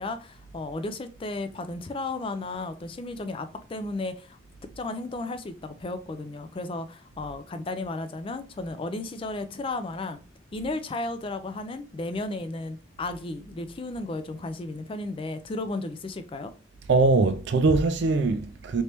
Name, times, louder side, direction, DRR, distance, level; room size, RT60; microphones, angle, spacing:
voice 1, 0.0-4.4 4.8-10.2 10.5-16.5, left 2 dB, 25° left, 0.3 m, -34 dB
voice 2, 16.9-18.8, right 3 dB, 55° right, 0.4 m, -22 dB
3.3 x 3.0 x 2.8 m
head